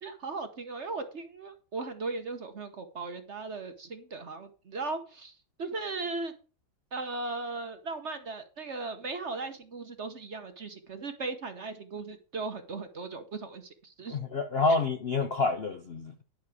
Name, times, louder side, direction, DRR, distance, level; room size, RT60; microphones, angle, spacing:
voice 1, 0.0-6.3 6.9-14.2, right 3 dB, 45° right, 1.0 m, -37 dB
voice 2, 14.1-16.2, left 3 dB, 90° left, 0.5 m, -28 dB
10.5 x 7.2 x 4.9 m
omnidirectional pair, 2.2 m